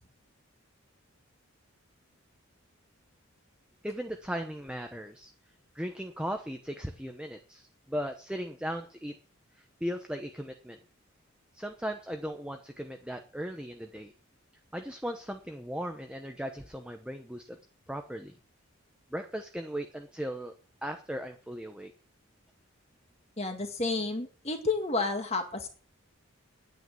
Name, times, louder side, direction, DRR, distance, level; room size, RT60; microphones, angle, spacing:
voice 1, 3.8-5.3 5.7-9.1 9.5-10.8 11.5-14.1 14.7-17.6 17.9-18.3 19.1-20.5 20.8-21.9, equal, 5° right, 5 dB, 0.9 m, -37 dB
voice 2, 23.4-25.7, left 3 dB, 30° left, 4 dB, 1.9 m, -31 dB
10.0 x 9.3 x 9.5 m, 0.41 s
head